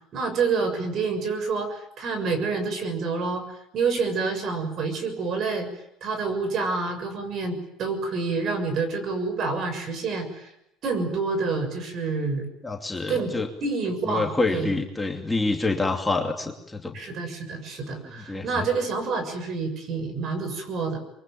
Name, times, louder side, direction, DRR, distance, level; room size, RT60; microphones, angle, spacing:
voice 1, 0.1-3.5 3.7-5.7 6.0-10.5 10.8-12.5 13.1-13.3 13.6-14.7 16.9-21.0, right 4 dB, 50° right, 8 dB, 6.9 m, -28 dB
voice 2, 12.6-13.5 14.0-17.0 18.1-18.7, left 3 dB, 10° left, 2 dB, 2.7 m, -27 dB
24.5 x 23.5 x 9.2 m, 0.82 s
cardioid pair, 120°, 0 cm